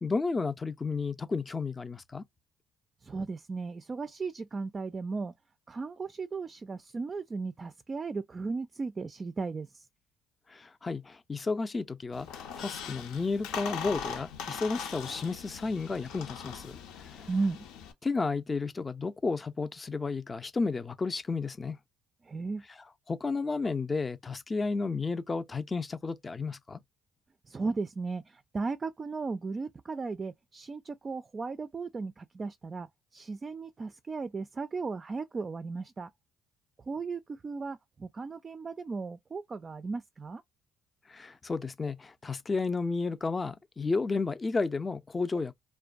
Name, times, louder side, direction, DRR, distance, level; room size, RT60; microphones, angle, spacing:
voice 1, 0.0-2.2 10.5-16.8 17.2-17.3 18.0-21.8 23.1-26.8 41.1-45.5, left 4 dB, 30° left, 0.5 m, -32 dB
voice 2, 3.0-5.3 5.7-9.9 17.3-17.6 22.2-22.6 27.5-36.1 36.9-40.4, right 4 dB, 35° right, 0.3 m, -36 dB
Squeak, 12.1-17.9, left 7 dB, 85° left, 0.7 m, -40 dB
2.5 x 2.1 x 2.4 m
supercardioid pair, 75°, 0 cm